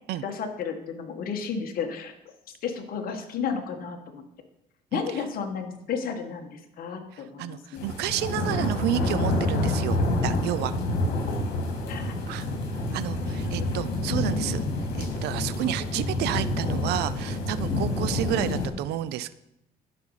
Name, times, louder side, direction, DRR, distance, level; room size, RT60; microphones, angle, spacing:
voice 1, 0.2-2.1 2.6-4.2 4.9-7.8 11.9-12.2 13.4-14.6 18.4-18.8, left 6 dB, 60° left, 4 dB, 1.5 m, -33 dB
voice 2, 7.1-10.7 12.3-12.5 12.9-14.6 15.0-19.3, right 13 dB, 75° right, 16 dB, 0.5 m, -30 dB
sound 1, 7.8-18.7, left 2 dB, 75° left, 2.1 m, -28 dB
11.5 x 5.3 x 4.9 m, 0.86 s
cardioid pair, 110°, 17 cm